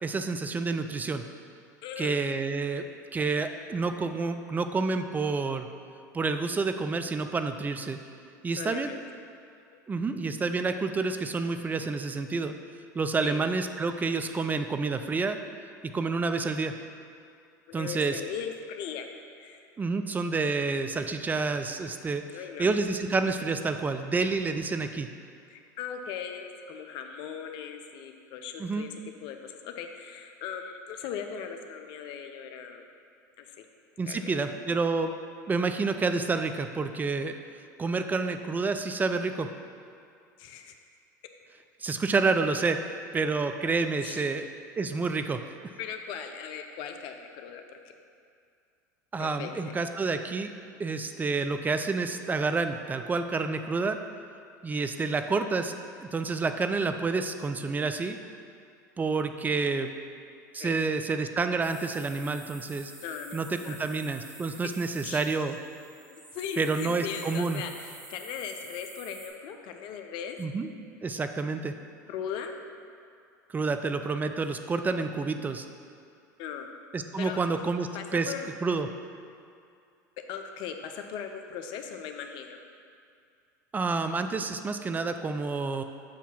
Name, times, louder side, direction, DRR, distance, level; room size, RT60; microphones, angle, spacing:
voice 1, 0.0-1.2 2.0-2.8 3.1-5.7 6.1-8.0 8.4-8.9 9.9-12.5 12.9-15.4 15.9-16.7 17.7-18.2 19.8-25.1 28.6-28.9 34.0-35.1 35.5-37.4 37.8-39.5 41.8-42.8 43.1-44.5 44.8-45.4 49.1-50.5 50.8-54.0 54.6-55.7 56.0-58.2 59.0-59.9 60.5-62.9 63.3-65.6 66.6-67.6 70.4-70.7 71.0-71.7 73.5-75.7 76.9-78.3 78.6-78.9 83.7-85.8, right 4 dB, 15° right, 8 dB, 0.4 m, -29 dB
voice 2, 1.8-2.2 8.6-9.0 13.2-13.4 17.7-19.1 19.3-19.7 22.3-22.7 25.5-29.0 29.2-32.8 33.4-33.7 34.1-34.3 40.4-40.8 44.0-44.4 45.8-47.8 49.2-49.7 60.6-60.7 63.0-63.8 65.0-65.3 66.1-70.4 72.1-72.5 76.4-76.7 77.2-77.4 77.9-78.5 80.3-82.6, left 7 dB, 55° left, 5 dB, 0.5 m, -39 dB
sound 1, 61.6-69.3, right 2 dB, 85° right, 1.0 m, -48 dB
7.2 x 2.7 x 5.9 m, 2.4 s
hypercardioid pair, 80°, 10 cm